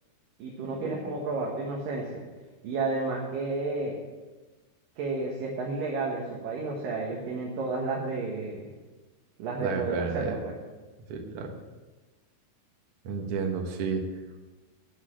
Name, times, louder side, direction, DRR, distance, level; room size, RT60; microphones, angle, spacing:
voice 1, 0.4-2.2 2.6-4.0 5.0-8.7 9.4-10.5, right 3 dB, 65° right, -2 dB, 2.8 m, -31 dB
voice 2, 9.6-10.4 11.1-11.5 13.0-14.0, right 5 dB, 80° right, 2 dB, 1.3 m, -31 dB
9.3 x 8.3 x 7.5 m, 1.2 s
omnidirectional pair, 4.8 m